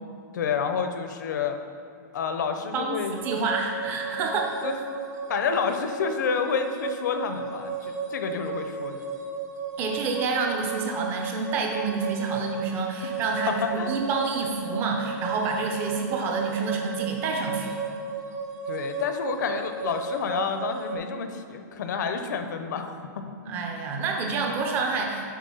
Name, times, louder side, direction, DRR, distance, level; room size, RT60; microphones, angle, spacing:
voice 1, 0.3-1.6 2.1-3.1 4.1-4.3 4.6-4.8 5.3-9.0 13.5-14.0 18.7-23.3, left 6 dB, 70° left, 7 dB, 0.7 m, -29 dB
voice 2, 2.7-4.5 9.8-17.7 23.5-25.3, right 4 dB, 20° right, 2 dB, 0.7 m, -28 dB
sound 1, 3.2-21.0, right 5 dB, 60° right, 0.8 m, -34 dB
7.5 x 4.6 x 5.5 m, 2.4 s
supercardioid pair, 175°, 10 cm